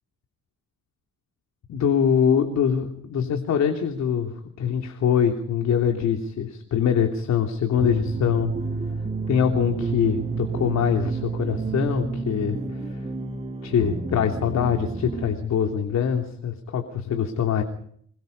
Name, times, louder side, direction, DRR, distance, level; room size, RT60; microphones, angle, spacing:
voice 1, 1.7-8.5 9.3-13.1 13.6-17.6, left 8 dB, 70° left, 4 dB, 3.2 m, -24 dB
sound 1, 7.8-15.4, right 4 dB, 25° right, 5.8 m, -30 dB
26.5 x 23.0 x 5.5 m, 0.63 s
cardioid pair, 110°, 29 cm